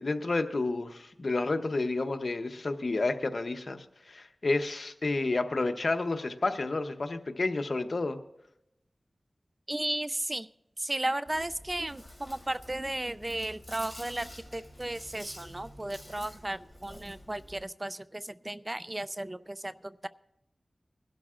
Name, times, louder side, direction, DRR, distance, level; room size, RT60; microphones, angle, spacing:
voice 1, 0.0-8.2, left 3 dB, 65° left, 8 dB, 0.8 m, -30 dB
voice 2, 9.7-10.5 10.8-20.1, right 1 dB, 30° right, 15 dB, 0.3 m, -35 dB
Chewing mastication, 11.2-17.6, equal, 5° right, 3.2 m, -49 dB
21.5 x 12.0 x 2.5 m, 0.85 s
wide cardioid pair, 50°, 0 cm